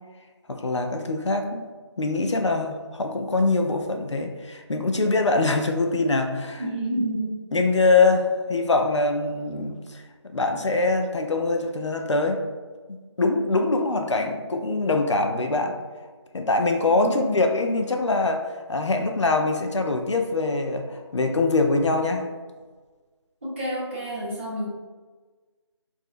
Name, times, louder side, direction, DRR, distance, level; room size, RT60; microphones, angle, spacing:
voice 1, 0.5-1.7 2.0-6.7 7.5-12.4 12.9-15.8 16.3-22.2, left 3 dB, 75° left, 4 dB, 0.5 m, -23 dB
voice 2, 6.6-7.3 17.0-17.4 23.4-24.7, right 1 dB, 25° right, -9 dB, 1.2 m, -29 dB
4.7 x 2.6 x 2.5 m, 1.4 s
figure-of-eight pair, 170°, 15 cm